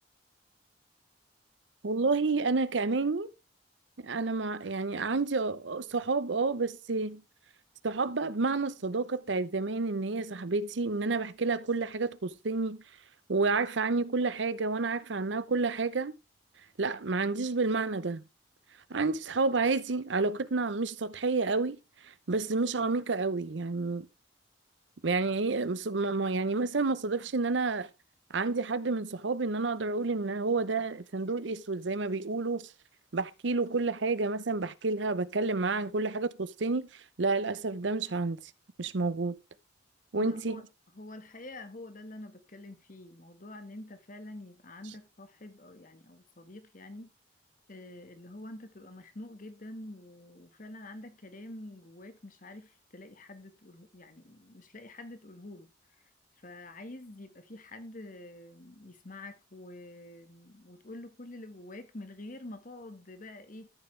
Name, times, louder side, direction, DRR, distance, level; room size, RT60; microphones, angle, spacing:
voice 1, 1.8-3.3 4.0-7.2 7.8-12.8 13.3-16.2 16.8-18.2 18.9-21.8 22.3-24.1 25.0-27.9 28.3-32.7 33.1-36.9 37.2-38.4 38.8-39.4 40.1-40.6, right 3 dB, 75° right, 0.8 m, -29 dB
voice 2, 40.2-40.7 40.9-47.1 47.7-55.7 56.4-63.7, left 1 dB, 45° left, 1.5 m, -47 dB
13.5 x 7.0 x 3.3 m
head